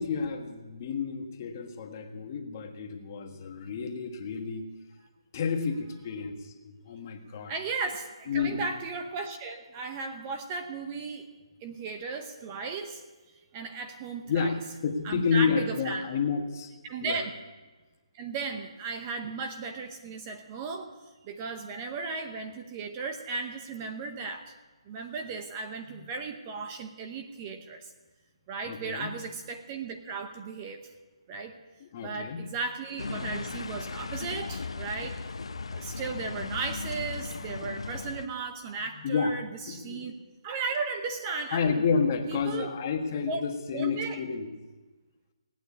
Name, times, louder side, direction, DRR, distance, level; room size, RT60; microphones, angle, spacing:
voice 1, 0.0-4.6 5.3-7.5 8.3-8.6 14.3-14.6 14.8-16.7 17.0-17.2 28.7-29.1 31.8-32.4 39.0-39.4 39.7-40.0 41.5-44.5, left 5 dB, 30° left, 4 dB, 1.4 m, -30 dB
voice 2, 7.5-11.3 11.6-13.0 13.5-14.5 15.0-16.1 16.8-17.3 18.1-20.9 21.2-24.5 24.9-27.9 28.5-30.9 31.3-31.5 32.0-35.2 35.7-40.1 40.4-41.8 42.3-42.7 43.3-43.4 43.7-44.2, right 4 dB, 20° right, 6 dB, 0.9 m, -35 dB
sound 1, 33.0-38.3, left 4 dB, 75° left, 0.9 m, -37 dB
18.0 x 9.2 x 8.4 m, 1.3 s
hypercardioid pair, 165°, 3 cm